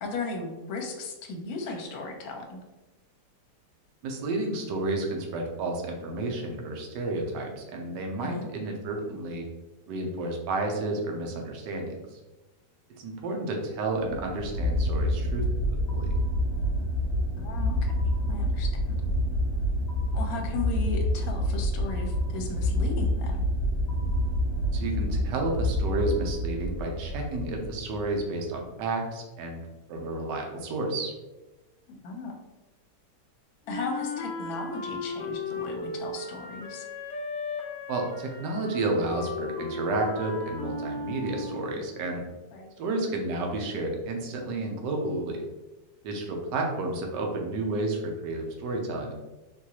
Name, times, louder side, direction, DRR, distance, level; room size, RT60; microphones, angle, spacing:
voice 1, 0.0-2.6 8.2-8.5 17.4-17.9 18.3-19.0 20.1-23.4 31.9-32.3 33.7-36.9 42.5-42.7, left 3 dB, 65° left, 2 dB, 1.1 m, -36 dB
voice 2, 4.0-9.5 9.9-12.2 12.9-15.4 15.9-16.1 24.7-29.6 29.9-31.1 37.9-42.2 42.8-45.4 46.0-49.1, right 2 dB, 80° right, 1 dB, 1.3 m, -31 dB
sound 1, 14.0-28.2, equal, 30° left, 1.3 m, -28 dB
Wind instrument woodwind instrument, 33.7-41.8, left 3 dB, 85° left, 0.6 m, -35 dB
3.8 x 2.6 x 2.8 m, 1.1 s
omnidirectional pair, 1.9 m